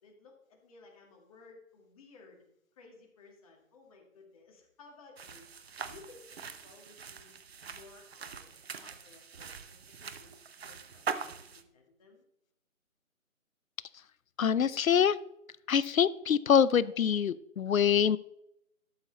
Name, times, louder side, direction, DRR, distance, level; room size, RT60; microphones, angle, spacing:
voice 1, 0.0-2.4 2.8-5.5 5.8-7.3 7.6-12.2, left 3 dB, 25° left, 0 dB, 1.9 m, -57 dB
sound 1, 5.2-11.6, right 6 dB, 50° right, 0.8 m, -42 dB
voice 2, 14.4-15.2 15.7-18.2, left 8 dB, 85° left, 19 dB, 0.7 m, -25 dB
12.0 x 6.6 x 4.0 m, 0.77 s
hypercardioid pair, 165°, 40 cm